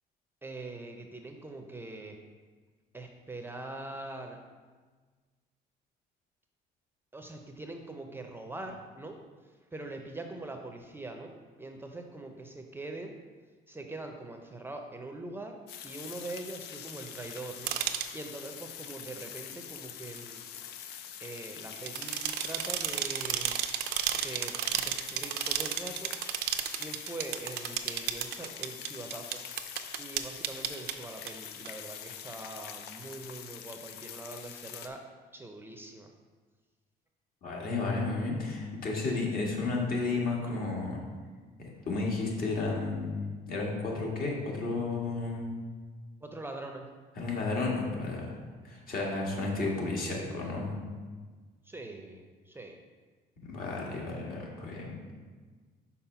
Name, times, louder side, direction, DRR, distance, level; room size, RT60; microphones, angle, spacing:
voice 1, 0.4-2.2 2.9-4.4 7.1-9.2 9.4-11.3 11.6-13.1 13.7-15.6 15.8-17.7 18.1-20.4 21.2-23.5 24.1-26.1 26.8-29.4 30.0-35.0 35.3-36.1 46.2-46.9 51.6-52.8, right 2 dB, 15° right, 3 dB, 0.6 m, -43 dB
sound 1, 15.7-34.9, left 9 dB, 75° left, 0.5 m, -44 dB
sound 2, 17.7-18.1 21.8-30.9 31.3-31.4 31.7-31.8, right 11 dB, 75° right, 0.5 m, -32 dB
voice 2, 37.4-41.0 41.9-45.5 47.2-48.4 48.6-50.8 53.4-55.2, left 3 dB, 60° left, -2 dB, 1.8 m, -32 dB
5.7 x 4.2 x 5.6 m, 1.4 s
cardioid pair, 110°, 17 cm